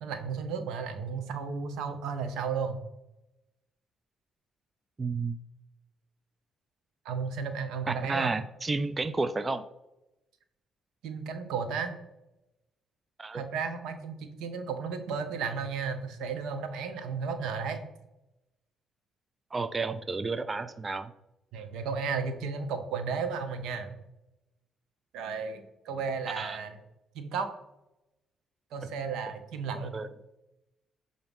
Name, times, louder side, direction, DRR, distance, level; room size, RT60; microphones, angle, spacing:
voice 1, 0.0-2.8 7.0-8.3 11.0-11.9 13.3-17.8 21.5-24.0 25.1-26.8 27.1-27.5 28.7-30.0, right 5 dB, 90° right, 8 dB, 0.7 m, -34 dB
voice 2, 5.0-5.4 7.9-9.6 13.2-13.4 19.5-21.1 26.4-26.6 29.7-30.1, right 3 dB, 25° right, 11 dB, 0.3 m, -31 dB
6.9 x 2.6 x 5.2 m, 0.92 s
cardioid pair, 90°, 0 cm